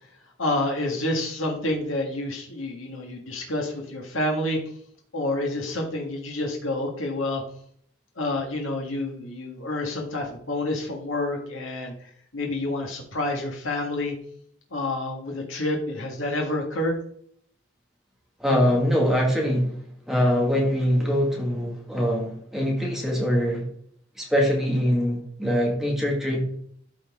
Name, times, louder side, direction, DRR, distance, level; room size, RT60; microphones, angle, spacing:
voice 1, 0.4-4.6 5.1-7.4 8.2-11.9 12.3-14.1 14.7-17.0, left 1 dB, 85° left, 1 dB, 1.8 m, -28 dB
voice 2, 18.4-23.7 24.2-26.5, equal, ahead, -2 dB, 1.7 m, -23 dB
12.5 x 4.3 x 3.6 m, 0.63 s
head